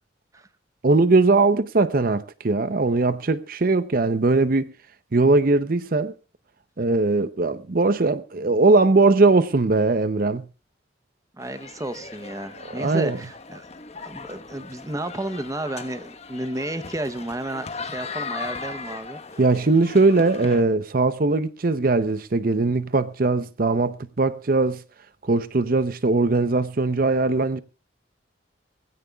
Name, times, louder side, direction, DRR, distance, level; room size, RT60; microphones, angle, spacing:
voice 1, 0.8-4.7 5.1-6.1 6.8-10.4 12.7-13.2 19.4-24.8 25.2-27.6, right 3 dB, 50° right, 0.7 m, -20 dB
sound 1, 11.4-20.6, left 4 dB, 35° left, 1.1 m, -38 dB
voice 2, 11.4-13.6 13.9-19.2, right 1 dB, 15° right, 0.8 m, -32 dB
20.5 x 16.0 x 2.3 m
head